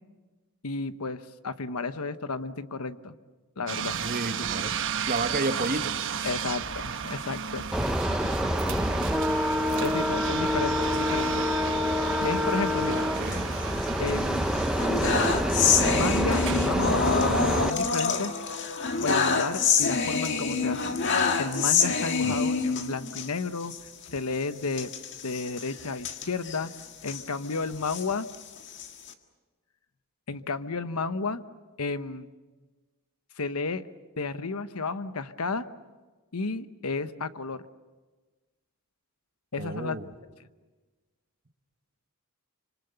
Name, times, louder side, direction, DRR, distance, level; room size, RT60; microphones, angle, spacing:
voice 1, 0.6-3.1 3.6-4.0 6.2-7.7 9.8-11.5 12.2-13.0 14.0-14.7 15.9-17.0 17.6-18.4 19.0-20.9 21.4-23.7 24.1-24.9 25.2-26.7 27.0-28.3 30.3-31.4 31.8-32.3 33.4-33.8 34.2-35.6 36.3-37.6 39.5-40.0, left 4 dB, 80° left, 11 dB, 1.0 m, -32 dB
sound 1, 3.7-17.7, right 7 dB, 60° right, 1.0 m, -34 dB
voice 2, 4.0-4.7 5.1-6.3 12.8-13.5 22.2-22.4 39.6-40.1, right 2 dB, 40° right, 7 dB, 1.4 m, -32 dB
sound 2, 7.7-17.7, equal, 5° right, 0.7 m, -27 dB
sound 3, 13.2-14.1 14.5-23.3 23.6-23.8 24.0-24.2 24.7-27.2 27.7-29.1, left 5 dB, 55° left, 1.8 m, -27 dB
26.5 x 25.5 x 7.0 m, 1.3 s
head